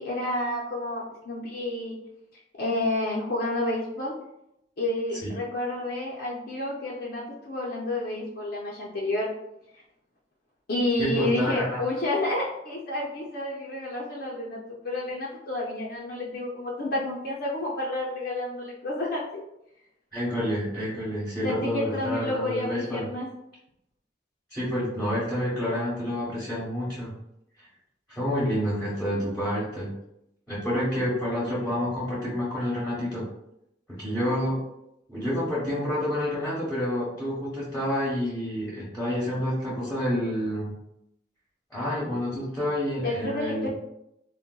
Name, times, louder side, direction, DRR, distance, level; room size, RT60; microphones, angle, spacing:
voice 1, 0.0-2.0 2.6-4.1 4.8-9.3 10.7-19.4 21.4-23.3 43.0-43.7, left 1 dB, 60° left, -4 dB, 0.5 m, -30 dB
voice 2, 11.0-11.8 20.1-23.1 24.5-27.1 28.1-29.9 30.5-33.2 34.0-34.6 35.1-40.7 41.7-43.7, equal, 5° left, -8 dB, 0.8 m, -28 dB
3.9 x 2.1 x 2.2 m, 0.82 s
head